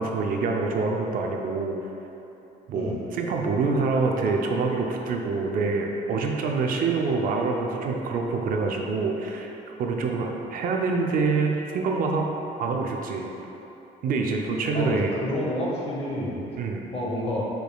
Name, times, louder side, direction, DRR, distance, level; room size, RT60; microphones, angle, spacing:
voice 1, 0.0-1.8 2.7-9.5 9.8-12.3 12.6-13.3 14.0-15.1 16.6-16.9, right 4 dB, 55° right, 1 dB, 0.5 m, -26 dB
voice 2, 14.7-16.5 16.9-17.4, left 1 dB, 35° left, -3 dB, 0.9 m, -29 dB
5.0 x 4.6 x 2.3 m, 2.9 s
cardioid pair, 110°, 17 cm